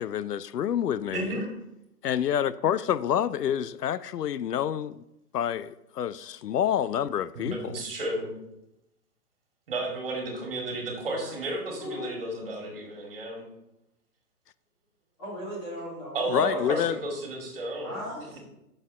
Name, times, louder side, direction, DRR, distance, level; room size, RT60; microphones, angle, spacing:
voice 1, 0.0-1.4 2.0-5.0 5.3-7.8 16.3-17.0, left 9 dB, 80° left, 0.6 m, -28 dB
voice 2, 1.1-1.5 7.3-8.3 9.7-13.4 16.1-18.0 18.3-18.4, right 2 dB, 35° right, 2.4 m, -33 dB
voice 3, 11.8-12.2 15.2-16.9 17.8-18.4, equal, 20° left, 3.3 m, -37 dB
9.5 x 6.6 x 5.4 m
hypercardioid pair, 170°, 47 cm